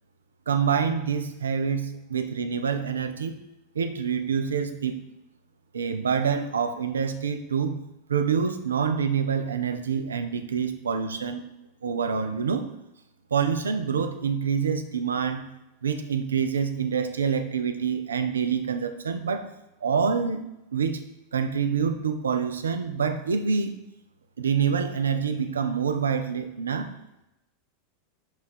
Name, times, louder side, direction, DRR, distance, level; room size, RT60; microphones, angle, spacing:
voice 1, 0.5-3.4 3.8-4.9 5.7-7.8 8.1-11.4 11.8-12.7 13.3-15.4 15.8-19.5 19.8-20.4 20.7-21.0 21.3-23.7 24.4-26.9, right 6 dB, 75° right, 8 dB, 0.3 m, -26 dB
3.7 x 2.4 x 4.2 m, 0.89 s
figure-of-eight pair, 85°, 0 cm